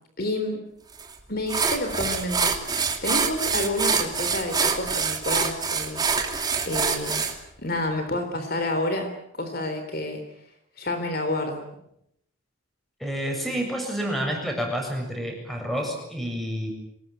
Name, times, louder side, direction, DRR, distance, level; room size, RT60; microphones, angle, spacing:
voice 1, 0.2-0.6 1.3-2.6 3.0-6.0 6.7-7.2 7.6-9.1 9.3-10.2 10.8-11.6, left 1 dB, 50° left, 6 dB, 3.7 m, -29 dB
sound 1, 1.0-1.1 1.5-7.3, right 5 dB, 20° right, 2.6 m, -25 dB
voice 2, 13.0-16.7, equal, ahead, 2 dB, 7.2 m, -29 dB
25.0 x 20.0 x 9.1 m, 0.76 s
head